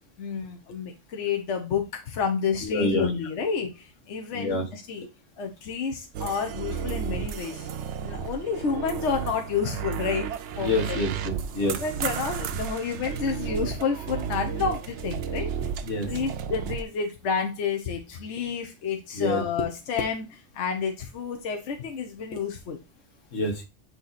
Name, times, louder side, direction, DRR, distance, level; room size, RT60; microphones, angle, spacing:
voice 1, 0.2-5.1 5.4-7.7 8.0-10.3 10.5-11.0 11.6-15.5 16.1-22.8, left 6 dB, 70° left, 3 dB, 1.1 m, -30 dB
voice 2, 2.6-3.1 4.3-4.6 10.6-11.8 15.8-16.1 19.1-19.4 23.3-23.6, left 2 dB, 90° left, 2 dB, 1.8 m, -27 dB
sound 1, 6.1-16.8, right 8 dB, 70° right, 0.9 m, -33 dB
8.5 x 2.9 x 4.0 m, 0.26 s
omnidirectional pair, 1.3 m